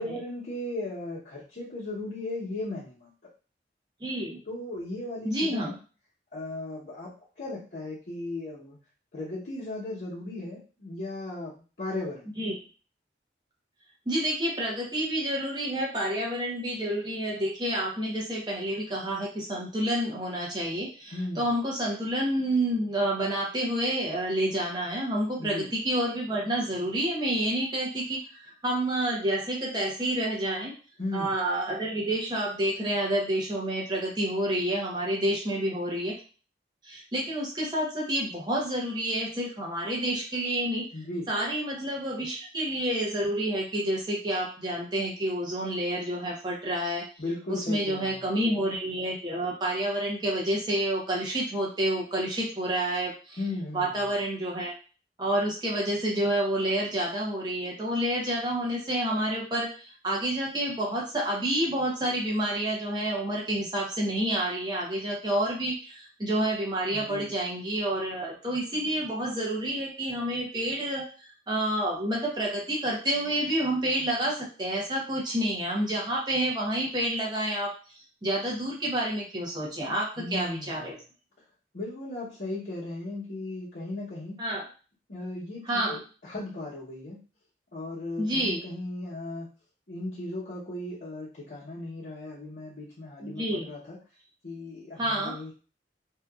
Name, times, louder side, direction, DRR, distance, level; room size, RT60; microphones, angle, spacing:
voice 1, 0.0-3.1 4.5-5.7 6.3-8.8 9.1-12.3 21.1-21.5 25.4-25.7 31.0-31.3 40.9-41.3 47.2-48.3 53.4-54.1 66.9-67.3 80.2-80.9 81.7-84.4 85.1-87.2 87.7-89.5 89.9-94.0 94.4-95.5, left 2 dB, 60° left, -12 dB, 0.9 m, -36 dB
voice 2, 4.0-4.4 5.2-5.7 12.4-12.6 14.1-30.7 31.1-36.1 36.8-40.9 41.3-47.1 47.5-53.4 53.7-54.7 55.2-71.0 71.5-77.7 78.2-80.9 84.4-84.6 85.7-86.0 88.2-88.6 93.2-93.7 95.0-95.3, right 1 dB, 25° right, -3 dB, 0.8 m, -29 dB
2.8 x 2.4 x 2.4 m, 0.36 s
head